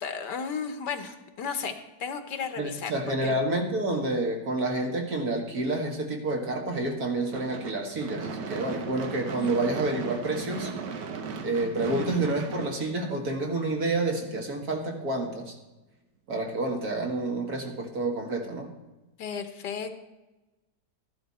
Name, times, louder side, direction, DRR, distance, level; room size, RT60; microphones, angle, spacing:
voice 1, 0.0-1.7 2.0-2.9 3.2-3.4 9.4-9.6 19.2-19.9, left 6 dB, 80° left, 8 dB, 1.7 m, -34 dB
voice 2, 2.6-10.7 11.4-15.5 16.3-18.7, right 2 dB, 60° right, 1 dB, 2.3 m, -29 dB
Gunshot gunfire / Fireworks, 7.3-13.6, right 5 dB, 80° right, 1.7 m, -37 dB
14.0 x 11.5 x 4.2 m, 1.1 s
omnidirectional pair, 1.8 m